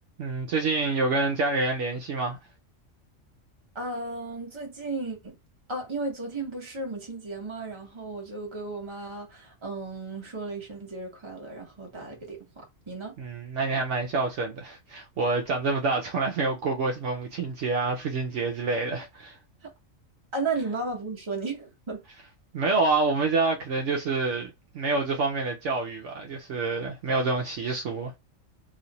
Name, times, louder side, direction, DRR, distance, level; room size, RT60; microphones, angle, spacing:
voice 1, 0.2-2.4 13.2-19.4 22.5-24.5 24.7-28.2, right 3 dB, 70° right, 0.9 m, -27 dB
voice 2, 3.7-5.4 5.7-13.1 19.6-19.7 20.3-22.0, right 3 dB, 25° right, 1.0 m, -34 dB
3.1 x 2.5 x 3.9 m
omnidirectional pair, 1.4 m